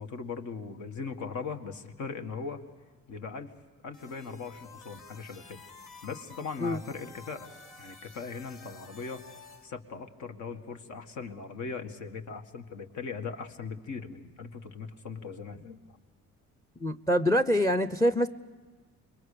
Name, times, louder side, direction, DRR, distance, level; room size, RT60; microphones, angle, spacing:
voice 1, 0.0-2.6 3.1-3.5 3.8-5.6 6.0-7.5 7.8-9.2 9.6-16.0, left 5 dB, 70° left, 6 dB, 1.9 m, -39 dB
sound 1, 3.9-9.7, left 4 dB, 45° left, 3.2 m, -51 dB
voice 2, 16.8-18.3, equal, 10° left, 13 dB, 0.7 m, -25 dB
26.5 x 22.5 x 6.8 m, 1.4 s
cardioid pair, 90°, 30 cm